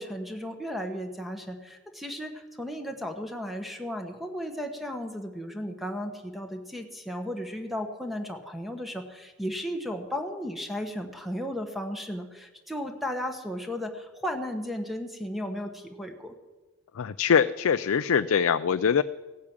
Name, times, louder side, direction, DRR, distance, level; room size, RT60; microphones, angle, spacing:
voice 1, 0.0-16.3, equal, ahead, 5 dB, 1.2 m, -35 dB
voice 2, 17.0-19.0, left 7 dB, 75° left, 11 dB, 0.4 m, -23 dB
16.5 x 8.5 x 8.8 m, 1.2 s
head